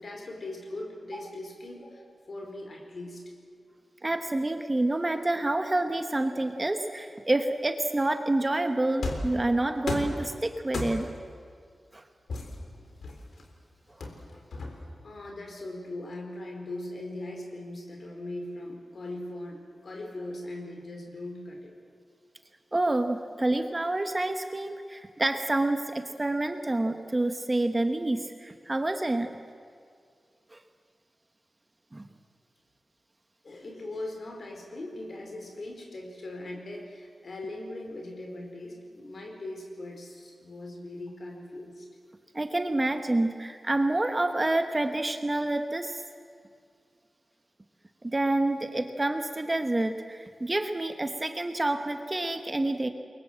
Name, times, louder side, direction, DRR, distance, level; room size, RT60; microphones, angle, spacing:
voice 1, 0.0-3.3 14.3-14.4 15.0-21.7 33.4-41.9, left 1 dB, 45° left, 2 dB, 4.9 m, -40 dB
voice 2, 4.0-11.1 11.9-12.0 22.7-29.4 30.5-30.6 31.9-32.0 42.3-46.0 48.0-52.9, right 2 dB, 20° right, 6 dB, 1.1 m, -28 dB
sound 1, 9.0-9.4 9.9-10.2 10.7-11.2 12.3-13.4 14.0-15.0, left 2 dB, 70° left, 3.8 m, -34 dB
29.0 x 23.0 x 7.7 m, 2.1 s
wide cardioid pair, 165°, 0 cm